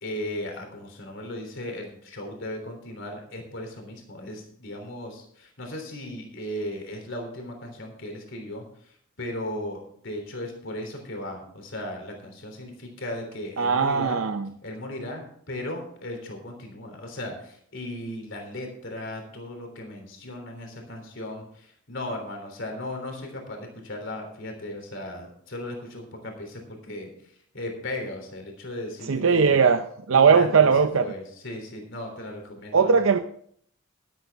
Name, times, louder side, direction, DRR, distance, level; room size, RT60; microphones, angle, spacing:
voice 1, 0.0-8.6 9.2-14.2 14.6-27.1 27.5-29.6 30.1-30.7 31.0-33.1, left 1 dB, 60° left, 3 dB, 3.3 m, -36 dB
voice 2, 13.6-14.5 29.1-29.8 30.1-31.1 32.7-33.2, right 5 dB, 65° right, 8 dB, 0.6 m, -19 dB
12.5 x 12.0 x 3.5 m, 0.63 s
head